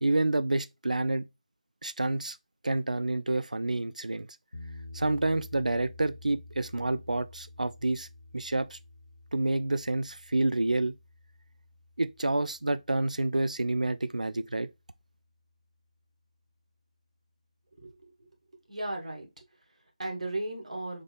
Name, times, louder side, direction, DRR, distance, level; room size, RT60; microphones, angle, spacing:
voice 1, 0.0-1.3 1.8-2.4 2.6-4.3 4.9-8.1 8.3-8.8 9.3-10.9 12.0-14.7, right 2 dB, 80° right, 0.4 m, -28 dB
sound 1, 4.5-14.6, left 2 dB, 70° left, 1.1 m, -50 dB
voice 2, 17.8-18.3 18.7-21.0, right 2 dB, 65° right, 1.5 m, -37 dB
4.0 x 3.3 x 3.3 m
figure-of-eight pair, 160°, 4 cm